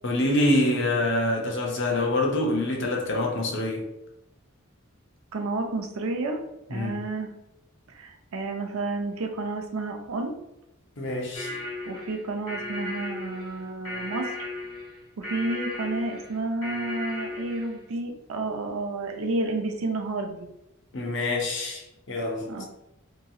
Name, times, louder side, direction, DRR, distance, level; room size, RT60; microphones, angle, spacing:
voice 1, 0.0-3.9 6.7-7.0 11.0-11.6 20.9-22.5, left 1 dB, 60° left, 0.6 m, -26 dB
voice 2, 5.3-6.4 6.7-7.3 7.9-10.3 11.9-14.3 15.2-20.5 22.5-22.7, right 2 dB, 85° right, 0.5 m, -30 dB
sound 1, 11.3-17.8, left 2 dB, 80° left, 1.3 m, -36 dB
2.9 x 2.7 x 2.3 m
head